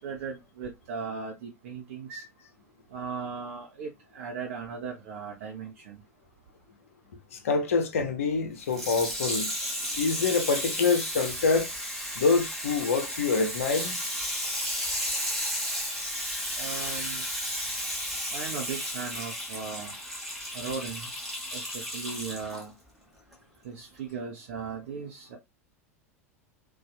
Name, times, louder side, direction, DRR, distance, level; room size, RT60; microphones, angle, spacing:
voice 1, 0.0-2.2 2.9-6.0 16.5-17.2 18.3-19.9 20.5-21.1 21.5-22.7 23.6-25.4, right 5 dB, 55° right, 0.6 m, -37 dB
voice 2, 7.3-9.5 10.0-11.7 12.2-13.9, left 4 dB, 65° left, 0.6 m, -26 dB
Water tap faucet / Sink (filling or washing), 8.6-22.6 23.3-23.4, equal, ahead, 1.2 m, -33 dB
2.6 x 2.3 x 2.3 m
figure-of-eight pair, 80°, 8 cm